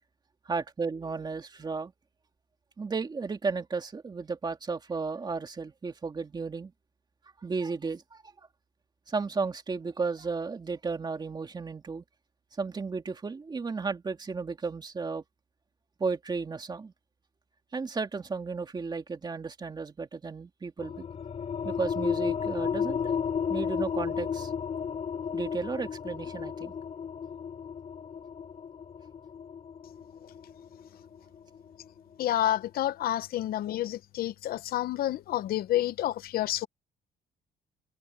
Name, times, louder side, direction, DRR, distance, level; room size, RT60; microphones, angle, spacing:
voice 1, 0.5-1.9 2.8-6.7 7.4-8.2 9.1-12.0 12.6-15.2 16.0-16.9 17.7-21.0 21.6-23.2 23.5-24.5 25.3-26.7, right 4 dB, 25° right, 2.4 m, -34 dB
sound 1, 20.8-32.0, left 7 dB, 40° left, 4.4 m, -33 dB
voice 2, 32.2-36.7, left 13 dB, 65° left, 0.9 m, -29 dB
cardioid pair, 110°, 17 cm